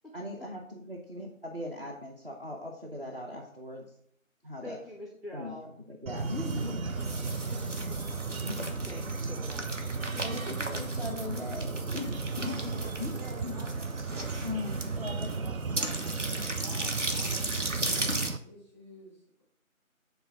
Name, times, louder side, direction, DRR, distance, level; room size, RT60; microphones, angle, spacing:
voice 1, 0.1-3.8 4.4-4.8 5.3-5.5 5.9-6.8 8.4-8.7 10.2-12.6 13.0-13.1 13.4-13.6 14.4-15.5, left 2 dB, 40° right, 1 dB, 0.9 m, -39 dB
voice 2, 4.6-5.7 6.6-6.7 7.4-7.6 7.9-8.0 8.5-9.9 10.1-10.2, left 1 dB, ahead, -2 dB, 0.7 m, -45 dB
sound 1, 6.1-18.4, right 5 dB, 80° right, 0.6 m, -36 dB
sound 2, 6.2-18.3, right 2 dB, 60° right, 1.2 m, -36 dB
voice 3, 13.1-14.3 15.3-19.4, equal, 20° right, -8 dB, 2.6 m, -51 dB
7.2 x 3.4 x 5.8 m, 0.65 s
figure-of-eight pair, 175°, 41 cm